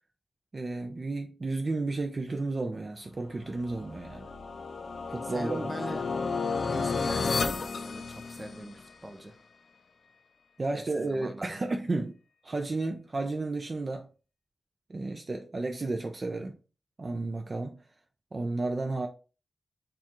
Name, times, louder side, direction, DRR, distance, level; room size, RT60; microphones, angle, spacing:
voice 1, 0.5-4.3 5.1-5.6 10.6-12.1 12.4-14.1 14.9-16.6 17.0-17.8 18.3-19.1, right 3 dB, 40° right, 0.5 m, -32 dB
sound 1, 3.6-8.8, left 4 dB, 70° left, 0.5 m, -32 dB
voice 2, 5.2-6.0 6.5-9.4 10.7-11.6, right 1 dB, 15° right, 0.8 m, -41 dB
6.7 x 2.4 x 2.9 m
wide cardioid pair, 85°, 0 cm